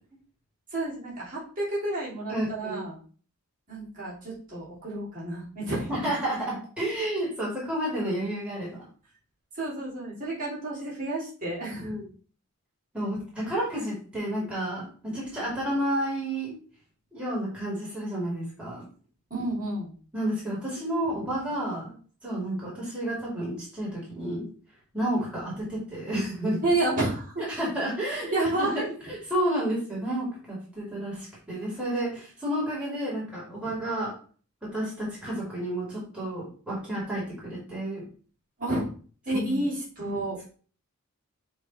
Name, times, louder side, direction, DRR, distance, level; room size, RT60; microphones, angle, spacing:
voice 1, 0.7-3.0 3.7-6.1 9.5-11.9 19.3-19.9 26.6-27.4 28.1-28.9 33.6-33.7 38.6-38.9 39.3-40.4, right 2 dB, 35° right, -7 dB, 2.8 m, -30 dB
voice 2, 2.3-2.8 5.9-8.8 11.8-12.0 12.9-16.5 17.1-18.8 20.1-21.9 22.2-24.5 24.9-26.6 27.5-28.8 29.1-34.1 34.6-38.0 39.3-39.6, right 1 dB, 5° right, -7 dB, 2.6 m, -31 dB
7.1 x 3.3 x 4.2 m, 0.42 s
head